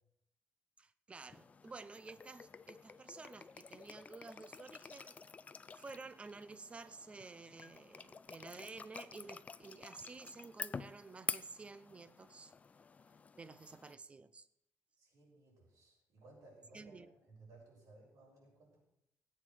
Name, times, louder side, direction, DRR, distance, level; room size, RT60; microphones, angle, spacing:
voice 1, 0.8-5.2 5.7-12.5 13.4-14.5 16.7-17.1, right 3 dB, 20° right, 0.6 m, -52 dB
sound 1, 1.3-13.9, left 5 dB, 25° left, 0.4 m, -49 dB
voice 2, 15.0-18.8, right 2 dB, 85° right, 6.7 m, -60 dB
17.0 x 8.7 x 6.2 m
wide cardioid pair, 165°, 5 cm